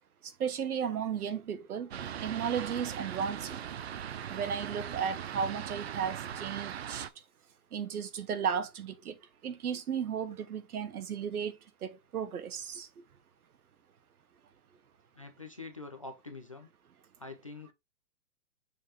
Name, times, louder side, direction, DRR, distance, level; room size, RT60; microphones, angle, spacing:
voice 1, 0.2-1.9 2.2-3.6 4.3-7.1 7.7-13.0, right 7 dB, 70° right, 1.3 m, -35 dB
Fixed-wing aircraft airplane, 1.9-7.1, right 9 dB, 45° right, 0.5 m, -39 dB
voice 2, 15.1-16.7 17.2-17.7, left 3 dB, 25° left, 0.4 m, -45 dB
6.7 x 3.0 x 5.0 m
hypercardioid pair, 160°, 46 cm